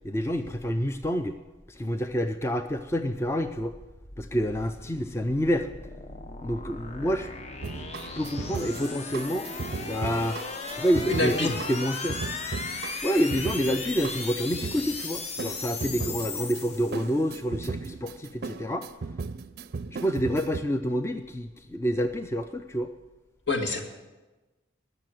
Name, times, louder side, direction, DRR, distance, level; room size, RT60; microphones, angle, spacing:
voice 1, 0.0-1.4 1.7-3.7 4.2-5.7 6.4-7.3 7.7-7.8 8.2-10.4 10.7-12.2 13.0-18.9 19.9-22.9, equal, 15° left, 7 dB, 0.4 m, -28 dB
sound 1, 3.7-17.3, left 4 dB, 35° left, 0.8 m, -37 dB
sound 2, 7.6-20.6, right 4 dB, 50° right, 0.4 m, -37 dB
voice 2, 11.1-11.6 23.5-23.8, left 2 dB, 65° left, 2 dB, 1.9 m, -26 dB
19.5 x 6.7 x 7.7 m, 1.2 s
head